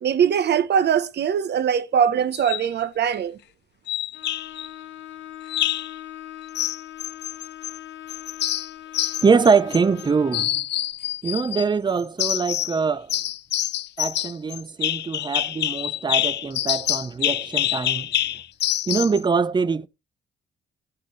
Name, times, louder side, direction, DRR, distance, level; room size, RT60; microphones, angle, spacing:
voice 1, 0.0-3.4, right 8 dB, 60° right, 1.0 m, -21 dB
sound 1, 2.3-2.7 3.9-4.7 5.5-5.9 6.5-7.8 8.1-10.0 10.3-11.7 12.2-12.8 13.1-19.2, left 13 dB, 60° left, 0.4 m, -26 dB
Bowed string instrument, 4.1-10.6, left 12 dB, 75° left, 1.0 m, -41 dB
voice 2, 9.2-10.6 11.2-13.1 14.0-18.1 18.9-19.9, right 5 dB, 20° right, 0.6 m, -23 dB
16.5 x 6.7 x 3.2 m
cardioid pair, 90°, 20 cm